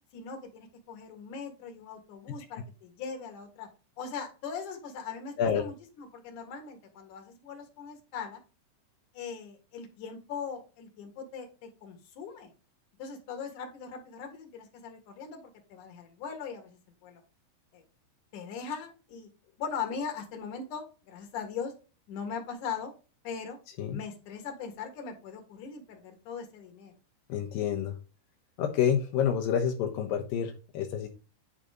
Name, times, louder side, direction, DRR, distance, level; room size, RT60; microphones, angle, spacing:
voice 1, 0.1-3.7 4.0-8.4 9.1-12.5 13.0-17.2 17.7-17.8 18.3-19.3 19.6-21.7 22.1-22.9 23.2-23.6 23.9-26.9, left 6 dB, 55° left, 4 dB, 2.6 m, -40 dB
voice 2, 27.3-27.9 28.6-31.1, left 8 dB, 80° left, 4 dB, 2.0 m, -28 dB
10.0 x 4.1 x 5.1 m, 0.33 s
omnidirectional pair, 5.3 m